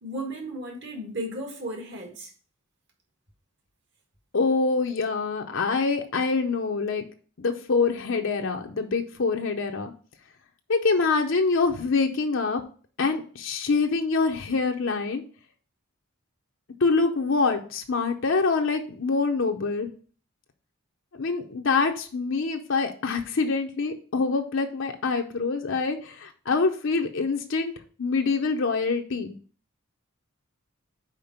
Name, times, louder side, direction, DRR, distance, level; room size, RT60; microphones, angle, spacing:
voice 1, 0.0-2.3, right 1 dB, 50° right, 2 dB, 1.7 m, -35 dB
voice 2, 4.3-7.0 7.4-9.9 10.7-12.6 13.0-15.2 16.8-19.9 21.2-27.7 28.0-29.3, left 4 dB, 60° left, 4 dB, 0.6 m, -25 dB
5.1 x 4.8 x 5.7 m, 0.41 s
head